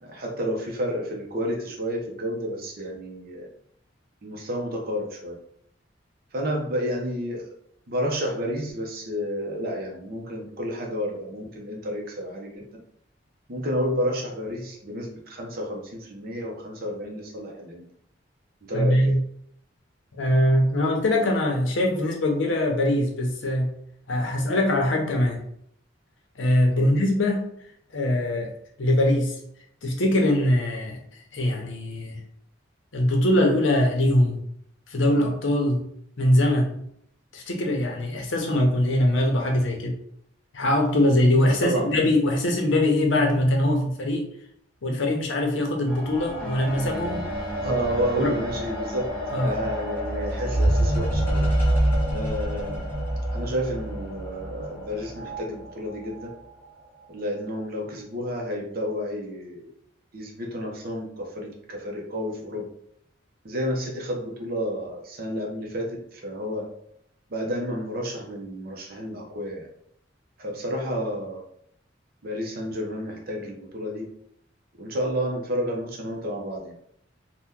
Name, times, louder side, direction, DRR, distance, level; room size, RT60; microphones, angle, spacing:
voice 1, 0.0-3.5 4.2-5.4 6.3-7.5 7.9-12.7 13.5-17.8 18.6-19.2 26.8-26.9 41.5-42.1 47.6-51.4 52.1-52.9 53.3-56.3 57.1-59.7 60.1-62.7 63.4-66.7 67.3-69.7 70.4-71.4 72.2-74.1 74.8-76.7, equal, 50° right, 0 dB, 0.7 m, -30 dB
voice 2, 18.7-19.2 20.1-23.7 24.1-25.4 26.4-27.5 27.9-28.5 28.8-29.4 29.8-31.0 31.3-32.2 32.9-34.4 34.9-35.8 36.2-36.8 37.3-40.0 40.5-44.3 44.8-47.2 48.2-48.3 49.3-49.5, left 1 dB, 80° left, 1 dB, 0.7 m, -22 dB
sound 1, 45.9-55.4 56.2-56.3, right 1 dB, 10° left, 1.2 m, -27 dB
2.8 x 2.2 x 3.5 m, 0.70 s
head